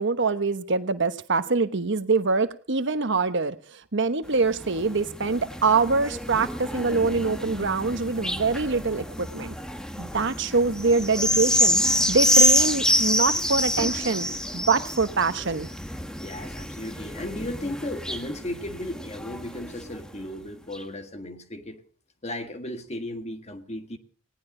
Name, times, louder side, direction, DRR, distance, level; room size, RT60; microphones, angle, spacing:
voice 1, 0.0-9.5 10.0-11.8 12.1-14.3 14.5-15.7, right 4 dB, 60° right, 1.1 m, -24 dB
sound 1, 4.3-20.1 20.7-20.8, equal, 5° left, 1.2 m, -27 dB
voice 2, 16.1-21.8 22.2-24.0, left 1 dB, 35° left, 1.6 m, -35 dB
19.0 x 18.0 x 3.8 m
head